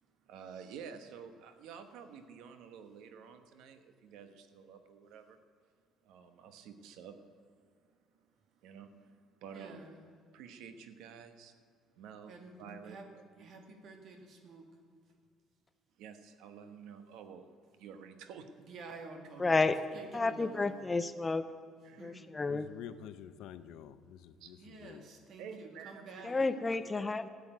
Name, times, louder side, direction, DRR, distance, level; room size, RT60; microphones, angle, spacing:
voice 1, 0.2-5.4 6.0-7.2 8.6-9.9 10.3-11.5 12.0-13.6 16.0-18.5 21.8-22.2 24.4-24.5 25.4-27.2, right 7 dB, 80° right, 1.1 m, -50 dB
voice 2, 9.5-10.0 12.3-12.6 12.8-13.1 13.4-14.7 18.6-20.8 22.0-22.4 24.6-26.4, right 3 dB, 45° right, 2.0 m, -50 dB
voice 3, 19.4-19.8 20.1-21.5 22.0-22.7 26.2-27.3, left 3 dB, 15° left, 0.4 m, -31 dB
voice 4, 22.3-25.0, left 10 dB, 75° left, 0.7 m, -49 dB
13.0 x 8.4 x 9.1 m
cardioid pair, 165°, 0 cm